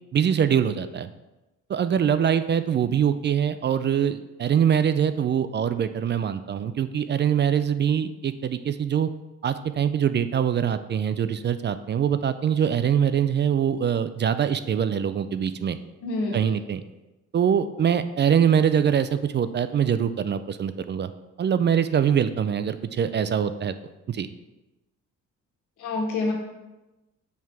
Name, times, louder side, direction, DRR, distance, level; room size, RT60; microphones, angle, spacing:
voice 1, 0.1-1.1 1.7-9.1 9.4-15.8 16.3-16.8 17.3-21.1 21.4-23.7 24.1-24.3, right 8 dB, 35° right, 12 dB, 0.4 m, -23 dB
voice 2, 16.0-16.4 25.8-26.3, left 3 dB, 85° left, 0 dB, 1.6 m, -26 dB
5.8 x 4.6 x 4.7 m, 1.0 s
cardioid pair, 90°, 30 cm